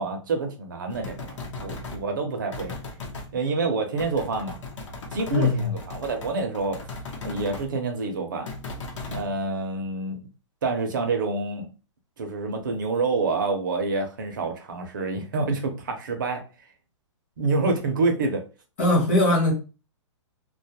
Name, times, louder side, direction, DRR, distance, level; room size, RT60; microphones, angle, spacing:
voice 1, 0.0-2.8 3.3-4.6 5.1-6.8 7.2-8.5 9.1-10.2 10.6-11.7 12.2-16.4 17.4-18.4, right 3 dB, 40° right, 0.5 m, -27 dB
sound 1, 0.9-2.0 2.5-3.3 4.0-7.7 8.5-9.3, left 3 dB, 70° left, 0.8 m, -37 dB
voice 2, 5.3-5.7 18.8-19.5, left 2 dB, 25° left, 0.7 m, -20 dB
2.2 x 2.0 x 2.7 m
hypercardioid pair, 180°, 16 cm